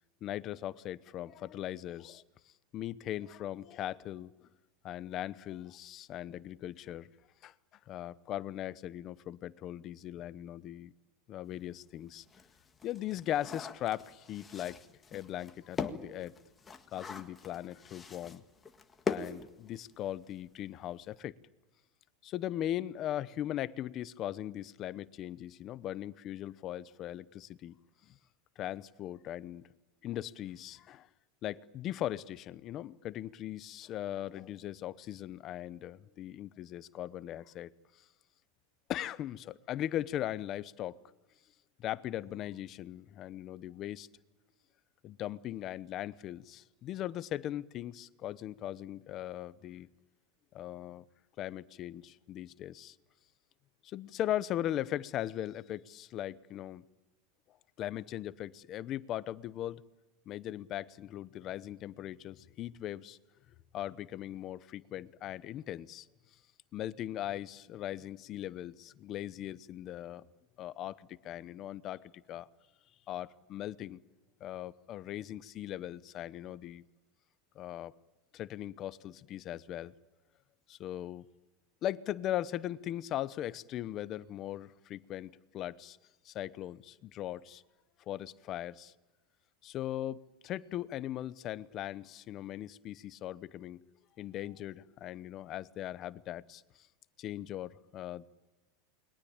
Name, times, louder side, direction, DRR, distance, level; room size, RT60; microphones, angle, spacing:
voice 1, 0.2-2.2 2.7-4.3 4.8-7.1 7.4-7.5 7.9-10.9 11.3-12.2 12.8-14.8 15.1-16.4 16.9-18.4 19.1-21.3 22.2-27.7 28.6-29.7 30.0-31.1 31.4-37.7 38.9-41.0 41.8-44.1 45.0-49.9 50.5-51.0 51.4-53.0 53.8-56.8 57.8-59.8 60.3-63.2 63.7-66.1 66.7-70.2 70.6-72.5 73.1-74.0 74.4-76.8 77.5-77.9 78.3-79.9 80.7-81.2 81.8-86.0 86.2-87.6 88.1-88.9 89.6-93.9 94.2-96.6 97.2-98.3, left 12 dB, 30° left, 0.9 m, -39 dB
sound 1, 11.5-11.6 12.1-20.2 20.4-20.5 20.8-21.1, left 5 dB, 15° left, 1.7 m, -42 dB
29.0 x 22.0 x 8.8 m
supercardioid pair, 165°, 0 cm